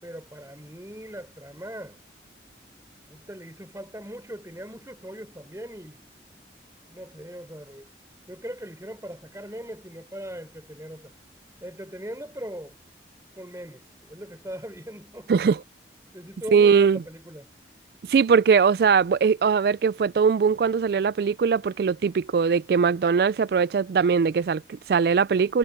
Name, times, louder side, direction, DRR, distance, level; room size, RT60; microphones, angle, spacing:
voice 1, 0.0-2.0 3.1-6.1 6.9-7.9 8.3-11.1 11.6-12.8 13.3-15.3 16.1-17.5, equal, 15° right, 4.7 m, -39 dB
voice 2, 15.3-15.6 16.5-17.0 18.1-25.6, right 6 dB, 55° right, 0.3 m, -21 dB
head